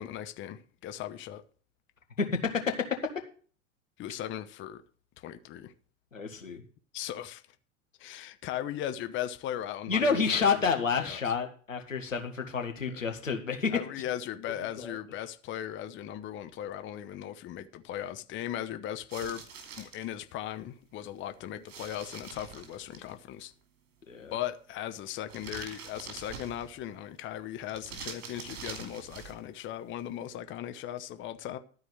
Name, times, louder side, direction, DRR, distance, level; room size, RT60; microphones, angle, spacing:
voice 1, 0.0-1.4 4.0-4.8 5.2-5.7 6.9-7.4 8.0-11.3 13.7-19.4 19.8-23.5 24.3-31.6, left 11 dB, 30° left, 0.9 m, -38 dB
voice 2, 2.2-3.1 6.1-6.6 9.9-13.8 14.8-15.0 24.1-24.4, left 5 dB, 85° left, 1.8 m, -29 dB
sound 1, 19.1-20.0 21.7-23.1 25.3-26.8 27.7-29.4, right 6 dB, 55° right, 3.0 m, -44 dB
13.0 x 4.8 x 7.8 m
figure-of-eight pair, 85°, 38 cm